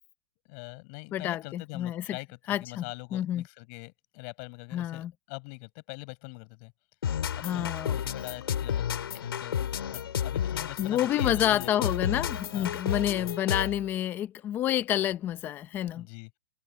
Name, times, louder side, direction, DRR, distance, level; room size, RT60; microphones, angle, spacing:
voice 1, 0.5-6.7 7.5-8.9 9.1-11.9 12.5-12.7 15.9-16.3, left 34 dB, 30° left, 6.6 m, -43 dB
voice 2, 1.1-2.2 2.5-2.8 3.1-3.4 4.7-5.1 7.4-8.0 10.8-16.1, left 12 dB, 15° left, 0.7 m, -29 dB
sound 1, 7.0-13.9, left 9 dB, 80° left, 3.4 m, -31 dB
hypercardioid pair, 165°, 12 cm